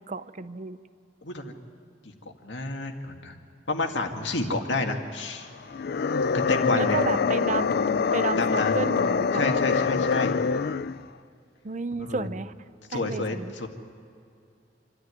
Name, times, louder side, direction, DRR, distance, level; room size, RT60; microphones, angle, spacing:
voice 1, 0.1-0.8 6.7-9.6 11.6-12.5 12.9-13.5, right 3 dB, 40° right, 14 dB, 0.7 m, -32 dB
voice 2, 1.2-1.5 2.4-3.3 3.7-5.5 6.3-7.0 8.4-8.8 9.3-10.4 12.0-12.3 12.9-13.7, left 2 dB, 80° left, 3 dB, 2.1 m, -29 dB
sound 1, 5.7-11.0, left 5 dB, 60° left, 0.4 m, -25 dB
27.0 x 13.0 x 9.7 m, 2.5 s
head